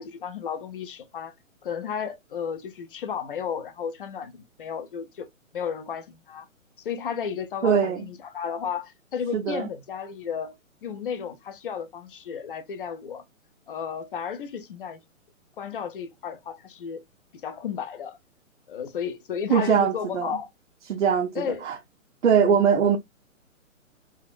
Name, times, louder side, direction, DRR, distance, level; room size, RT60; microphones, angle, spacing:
voice 1, 0.0-1.3 1.6-5.3 5.5-6.5 6.8-10.6 10.8-13.2 13.7-15.0 15.6-17.0 17.4-18.2 18.7-20.5 21.3-21.7, left 7 dB, 40° left, 0.6 m, -33 dB
voice 2, 7.6-8.0 9.3-9.7 19.5-20.4 20.9-21.8 22.2-23.0, right 7 dB, 60° right, 0.7 m, -22 dB
3.9 x 2.4 x 2.3 m
figure-of-eight pair, 130°, 41 cm